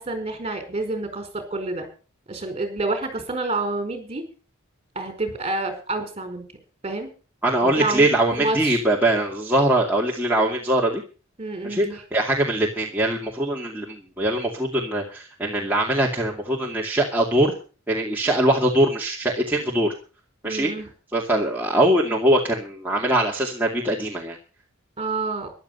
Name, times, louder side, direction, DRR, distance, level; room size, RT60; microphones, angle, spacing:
voice 1, 0.0-1.9 2.3-4.3 4.9-6.5 6.8-7.1 7.6-8.1 8.4-8.8 11.4-12.0 20.4-20.9 25.0-25.5, right 2 dB, 30° right, 7 dB, 4.7 m, -28 dB
voice 2, 7.4-11.0 11.6-17.5 17.9-19.9 20.4-20.7 21.1-24.4, right 1 dB, 10° right, -3 dB, 2.5 m, -22 dB
14.5 x 11.5 x 5.6 m, 0.36 s
head